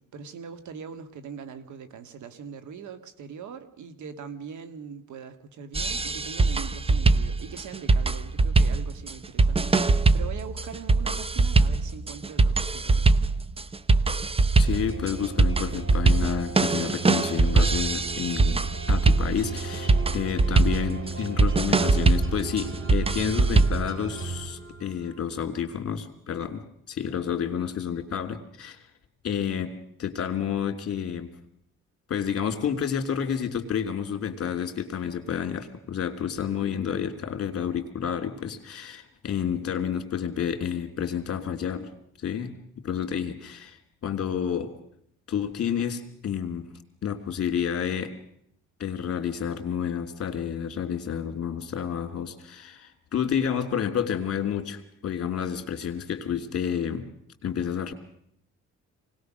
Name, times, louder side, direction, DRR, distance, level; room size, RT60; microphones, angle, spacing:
voice 1, 0.0-13.1, right 6 dB, 75° right, 10 dB, 2.1 m, -42 dB
sound 1, 5.7-23.9, right 3 dB, 20° right, 0.7 m, -22 dB
voice 2, 14.6-28.8 29.2-31.3 32.1-41.9 42.2-42.5 42.8-44.7 45.3-46.7 47.0-48.1 48.8-57.1 57.4-57.9, left 8 dB, 50° left, 7 dB, 3.0 m, -30 dB
sound 2, 14.6-25.2, right 3 dB, 40° right, 4.7 m, -37 dB
24.5 x 19.0 x 6.4 m, 0.71 s
cardioid pair, 90°, 30 cm